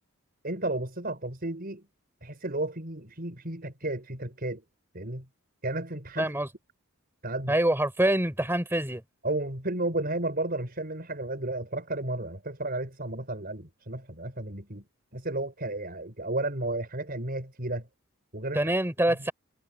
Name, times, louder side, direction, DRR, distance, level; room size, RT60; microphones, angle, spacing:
voice 1, 0.4-1.9 2.2-4.6 4.9-5.3 5.6-6.3 7.2-7.6 9.2-14.9 15.1-17.9 18.3-18.7 19.1-19.3, right 2 dB, 45° right, 5.6 m, -33 dB
voice 2, 6.2-6.5 7.5-9.0 18.5-19.3, right 1 dB, 10° right, 5.3 m, -25 dB
head